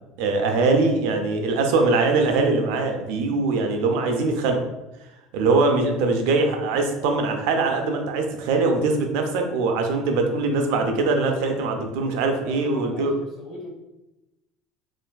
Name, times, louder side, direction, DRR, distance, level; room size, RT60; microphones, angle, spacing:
voice 1, 0.2-4.6 5.3-13.1, right 3 dB, 75° right, 4 dB, 0.4 m, -22 dB
voice 2, 12.4-13.7, left 1 dB, 30° left, -2 dB, 1.0 m, -41 dB
3.3 x 2.5 x 2.2 m, 0.98 s
supercardioid pair, 120°, 0 cm